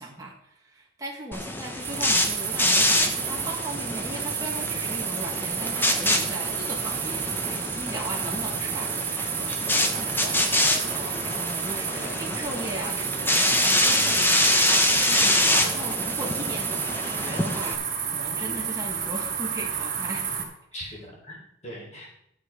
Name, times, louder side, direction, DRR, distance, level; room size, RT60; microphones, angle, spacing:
voice 1, 0.0-17.9 18.1-21.0, right 1 dB, 15° right, -3 dB, 1.6 m, -38 dB
sound 1, 1.3-17.7, left 1 dB, 10° left, 1.0 m, -26 dB
sound 2, 1.8-20.4, right 7 dB, 45° right, 3.0 m, -31 dB
voice 2, 20.7-22.1, equal, 35° left, -3 dB, 3.9 m, -41 dB
12.0 x 7.8 x 4.8 m, 0.75 s
head